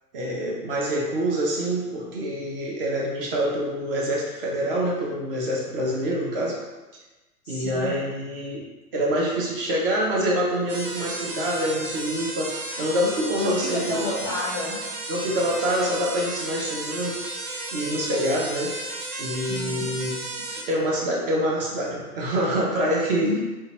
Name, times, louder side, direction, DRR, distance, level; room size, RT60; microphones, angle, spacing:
voice 1, 0.1-6.6 7.5-8.7 8.9-14.1 15.1-17.2 17.7-18.7 19.2-20.2 20.5-23.3, equal, 35° right, -3 dB, 0.6 m, -26 dB
voice 2, 7.4-7.9 13.4-14.8 19.5-19.9 23.2-23.4, left 3 dB, 15° left, -10 dB, 0.4 m, -30 dB
sound 1, 10.7-20.6, right 2 dB, 75° right, 0.7 m, -33 dB
2.7 x 2.2 x 2.8 m, 1.2 s
figure-of-eight pair, 105°, 46 cm